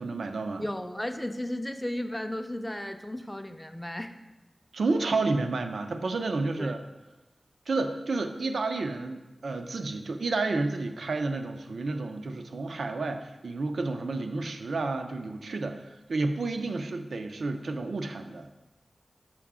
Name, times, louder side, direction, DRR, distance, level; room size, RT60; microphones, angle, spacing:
voice 1, 0.0-0.6 4.7-6.8 7.7-18.5, right 3 dB, 90° right, 7 dB, 0.4 m, -30 dB
voice 2, 0.6-4.1 6.6-6.7, left 1 dB, 10° left, 7 dB, 0.4 m, -34 dB
5.9 x 4.7 x 3.6 m, 1.1 s
wide cardioid pair, 100°, 0 cm